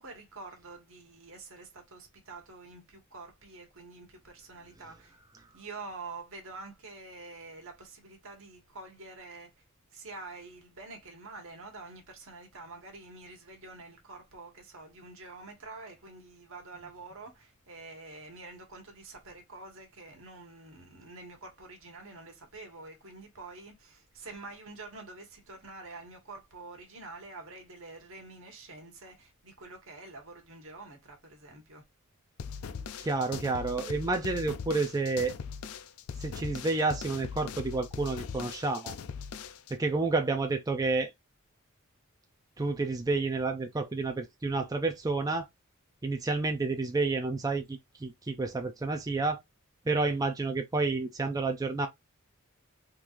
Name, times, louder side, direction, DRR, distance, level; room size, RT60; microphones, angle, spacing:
voice 1, 0.0-5.2 5.5-9.5 9.9-31.8, right 3 dB, 65° right, 1.4 m, -47 dB
sound 1, 32.4-39.7, left 6 dB, 80° left, 0.4 m, -40 dB
voice 2, 33.0-35.3 36.2-38.9 39.7-41.1 42.6-45.5 46.0-49.4 49.9-51.9, right 3 dB, 15° right, 0.4 m, -30 dB
3.6 x 3.0 x 2.5 m
head